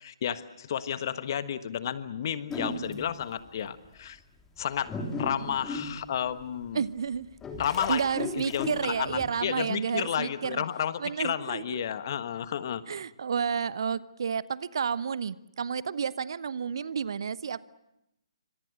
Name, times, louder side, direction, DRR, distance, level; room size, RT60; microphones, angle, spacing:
voice 1, 0.0-4.2 4.6-6.8 7.6-12.8, left 9 dB, 45° left, 12 dB, 1.4 m, -32 dB
sound 1, 2.5-3.2 3.8-3.9 4.6-6.7 7.2-9.3, left 3 dB, 10° left, 2.9 m, -36 dB
voice 2, 6.7-7.3 7.9-10.6 11.0-11.8 12.9-17.6, right 6 dB, 55° right, 18 dB, 0.8 m, -31 dB
27.5 x 25.5 x 6.4 m, 0.86 s
figure-of-eight pair, 135°, 3 cm